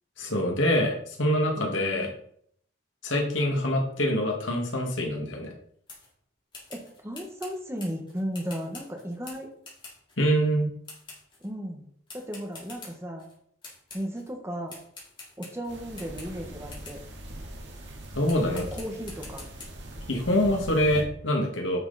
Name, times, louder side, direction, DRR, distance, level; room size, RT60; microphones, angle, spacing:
voice 1, 0.2-2.1 3.0-5.5 10.2-10.7 18.1-18.6 20.1-21.8, equal, 75° left, 1 dB, 2.2 m, -25 dB
voice 2, 1.6-2.1 6.7-9.5 11.4-11.8 12.1-13.3 13.9-14.7 15.4-17.0 18.5-19.4, equal, 15° right, 1 dB, 1.6 m, -35 dB
sound 1, 5.9-6.1 6.5-10.3 10.8-11.5 12.1-13.3 13.6-14.3 14.7-17.1 17.7-17.9 18.3-19.7, left 3 dB, 25° left, 3.6 m, -47 dB
sound 2, 15.7-21.0, right 1 dB, 65° right, 2.1 m, -41 dB
10.5 x 6.1 x 4.3 m, 0.65 s
head